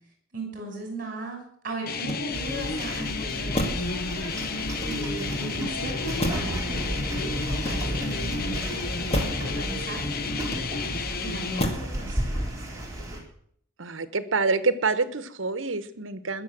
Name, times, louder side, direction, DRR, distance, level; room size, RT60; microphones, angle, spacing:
voice 1, 0.3-1.4 1.6-10.8 11.2-12.5, right 2 dB, 45° right, 2 dB, 5.6 m, -38 dB
sound 1, 1.9-11.6, left 4 dB, 50° left, 0.8 m, -32 dB
Motor vehicle (road), 1.9-2.7 3.5-4.0 4.6-5.3 6.2-6.7 7.4-8.2 9.1-9.5 10.4-11.0 11.6-12.0 12.3-12.8, equal, 30° left, 2.2 m, -32 dB
sound 2, 2.3-13.2, right 1 dB, 15° right, 3.8 m, -33 dB
voice 2, 13.8-16.4, right 4 dB, 80° right, 14 dB, 1.2 m, -27 dB
20.5 x 7.0 x 7.5 m, 0.64 s
head